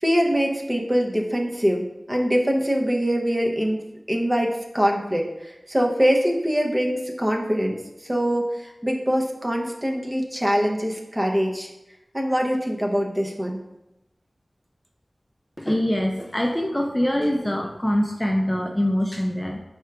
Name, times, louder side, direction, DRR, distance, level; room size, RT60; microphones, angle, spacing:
voice 1, 0.0-3.8 4.1-11.7 12.1-13.6, equal, 20° right, 0 dB, 0.7 m, -23 dB
voice 2, 15.6-19.6, equal, 10° left, 2 dB, 0.4 m, -24 dB
4.3 x 2.4 x 4.6 m, 0.95 s
wide cardioid pair, 65°, 0 cm